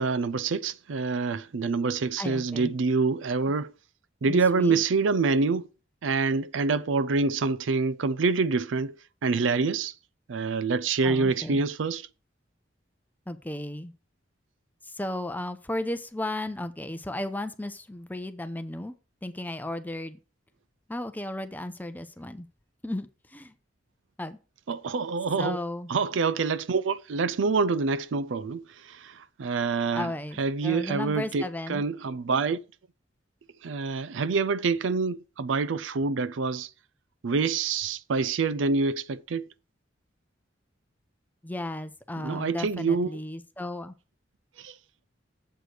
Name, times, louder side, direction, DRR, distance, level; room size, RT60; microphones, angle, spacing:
voice 1, 0.0-3.7 4.2-5.6 6.0-8.9 9.2-9.9 10.3-12.1 24.7-25.6 25.9-30.1 30.4-32.6 33.6-36.7 37.2-39.5 42.2-43.1 44.6-44.7, right 4 dB, 75° right, 0.5 m, -26 dB
voice 2, 2.2-2.7 4.3-4.8 11.0-11.6 13.3-13.9 14.8-18.9 19.2-20.2 20.9-22.5 22.8-23.5 24.2-24.4 25.4-25.9 29.9-31.8 41.4-43.9, left 1 dB, 10° left, 0.7 m, -34 dB
7.8 x 5.0 x 6.5 m
head